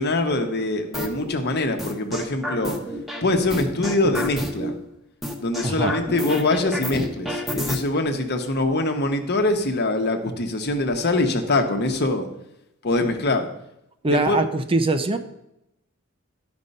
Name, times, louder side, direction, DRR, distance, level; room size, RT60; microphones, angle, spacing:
voice 1, 0.0-2.8 3.2-4.7 5.4-12.3 12.8-13.5 14.1-14.4, left 2 dB, 50° left, 5 dB, 1.1 m, -23 dB
sound 1, 0.9-1.3 1.8-3.2 3.5-4.7 5.2-7.8, equal, ahead, 1.1 m, -29 dB
voice 2, 5.6-6.0 14.0-15.2, right 2 dB, 25° right, 8 dB, 0.6 m, -22 dB
11.5 x 5.3 x 5.4 m, 0.84 s
head